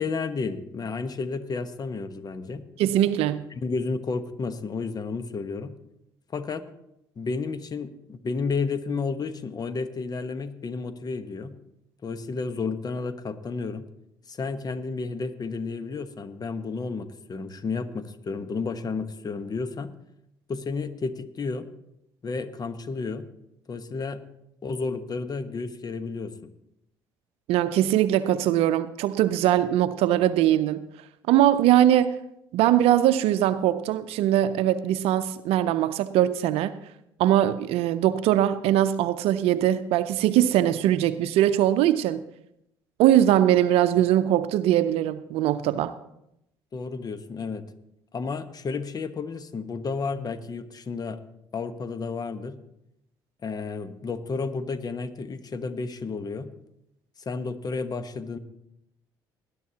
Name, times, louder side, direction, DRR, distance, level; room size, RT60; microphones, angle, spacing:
voice 1, 0.0-2.6 3.5-5.7 6.3-6.6 7.2-11.5 12.0-13.8 14.3-19.9 20.5-21.7 22.2-23.3 23.7-24.2 24.6-26.3 46.7-47.6 48.1-51.2 51.5-52.6 53.4-56.5 57.2-58.4, left 4 dB, 40° left, 1.1 m, -31 dB
voice 2, 2.8-3.4 27.5-30.9 31.3-32.2 32.5-36.8 37.2-42.2 43.0-45.9, right 12 dB, 70° right, 0.6 m, -21 dB
19.5 x 11.5 x 2.9 m
hypercardioid pair, 60°, 11 cm